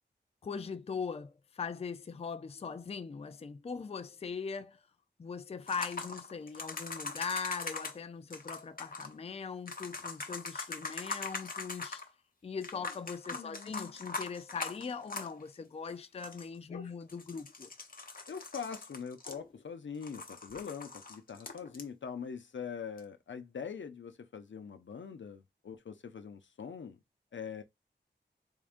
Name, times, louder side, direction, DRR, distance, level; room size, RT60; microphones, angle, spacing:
voice 1, 0.4-4.8 5.2-12.0 12.4-17.7, left 5 dB, 35° left, 0.4 m, -40 dB
sound 1, 5.7-8.0 8.3-9.1 9.7-12.1 12.6-15.6 15.9-16.0 16.2-16.6 17.1-19.7 20.0-21.8 23.0-23.1, left 3 dB, 50° left, 0.8 m, -42 dB
voice 2, 13.4-13.7 16.7-16.9 18.3-27.0 27.3-27.6, left 6 dB, 85° left, 0.7 m, -43 dB
3.7 x 3.6 x 2.5 m
wide cardioid pair, 85°, 19 cm